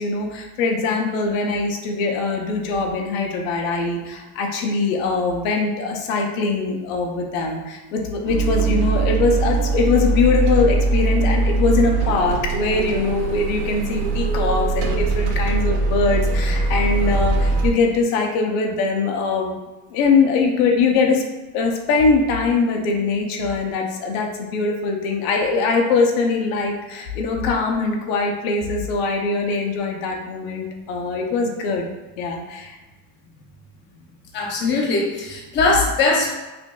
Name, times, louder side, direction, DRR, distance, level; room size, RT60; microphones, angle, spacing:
voice 1, 0.0-19.5 19.9-21.2 21.5-31.9 32.2-32.8, left 4 dB, 70° left, 2 dB, 0.7 m, -22 dB
sound 1, 8.3-17.7, right 3 dB, 90° right, 0.8 m, -21 dB
voice 2, 34.3-36.4, left 3 dB, 25° left, -2 dB, 0.7 m, -20 dB
5.1 x 2.6 x 2.3 m, 1.1 s
cardioid pair, 155°, 41 cm